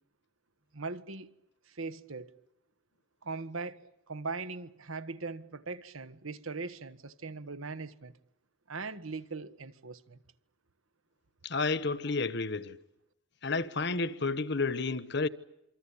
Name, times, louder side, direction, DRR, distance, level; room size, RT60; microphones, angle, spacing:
voice 1, 0.7-1.3 1.7-2.4 3.2-8.1 8.7-10.2, right 4 dB, 75° right, 1.5 m, -40 dB
voice 2, 11.4-12.8 13.4-15.3, left 3 dB, 55° left, 1.2 m, -31 dB
27.5 x 25.0 x 8.6 m
head